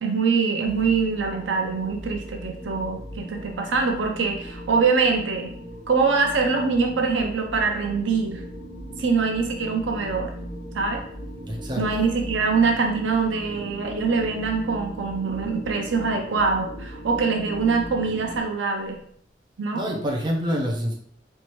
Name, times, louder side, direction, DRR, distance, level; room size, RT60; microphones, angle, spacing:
voice 1, 0.0-5.5 5.9-8.4 9.0-10.3 10.7-11.0 11.8-19.0 19.6-19.8, right 4 dB, 70° right, 2 dB, 0.6 m, -24 dB
sound 1, 0.6-18.4, equal, 75° left, 1.4 m, -38 dB
voice 2, 11.4-11.8 19.7-20.9, equal, 25° right, 0 dB, 0.7 m, -26 dB
4.5 x 2.6 x 3.0 m, 0.63 s
head